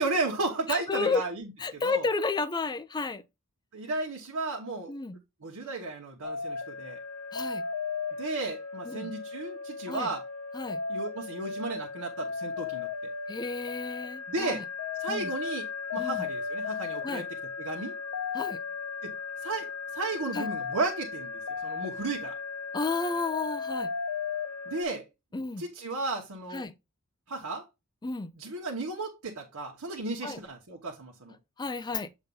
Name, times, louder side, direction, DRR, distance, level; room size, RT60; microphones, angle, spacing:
voice 1, 0.0-1.5 1.7-2.0 3.7-4.9 5.4-7.0 8.2-10.2 10.9-12.9 14.3-14.6 15.0-17.3 17.6-18.0 19.0-19.1 19.4-22.4 24.7-25.1 25.6-26.7 27.3-27.6 28.3-31.4, right 3 dB, 85° right, 1.1 m, -34 dB
voice 2, 0.7-1.2 1.6-3.2 4.9-5.2 7.3-7.6 8.8-9.1 9.9-10.1 10.5-10.8 13.3-14.6 15.1-15.3 16.0-16.3 17.0-17.3 18.3-18.6 20.3-20.5 22.7-23.9 25.3-25.6 26.5-26.7 28.0-28.3 30.2-30.4 31.6-32.1, left 4 dB, 20° left, 0.4 m, -32 dB
sound 1, 6.2-24.9, left 5 dB, 80° left, 0.6 m, -36 dB
7.2 x 2.6 x 5.3 m
head